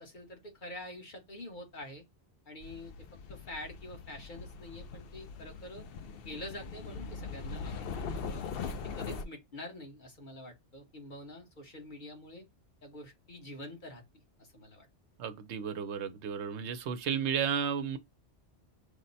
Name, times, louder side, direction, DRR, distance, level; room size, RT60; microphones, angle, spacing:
voice 1, 0.0-2.0 2.4-2.9 3.3-5.9 6.2-8.4 9.0-12.4 12.8-14.0 14.4-14.9, left 1 dB, 45° left, 1.2 m, -46 dB
sound 1, 2.6-9.2, left 5 dB, 65° left, 0.7 m, -41 dB
voice 2, 15.2-18.0, right 7 dB, 80° right, 1.0 m, -33 dB
5.1 x 2.1 x 4.0 m
omnidirectional pair, 1.1 m